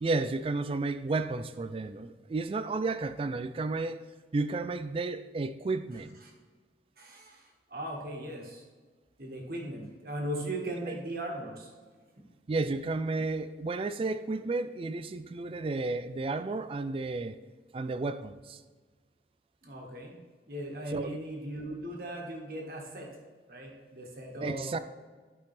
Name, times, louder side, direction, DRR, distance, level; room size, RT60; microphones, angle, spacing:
voice 1, 0.0-4.0 4.3-6.2 10.9-11.0 12.5-17.4 17.7-18.6 20.9-21.2 24.4-24.8, right 3 dB, 30° right, 0.3 m, -32 dB
voice 2, 7.0-8.6 9.2-11.7 19.6-20.2 20.4-23.1 23.5-24.7, right 1 dB, 55° right, 1.7 m, -38 dB
11.5 x 5.4 x 3.3 m
head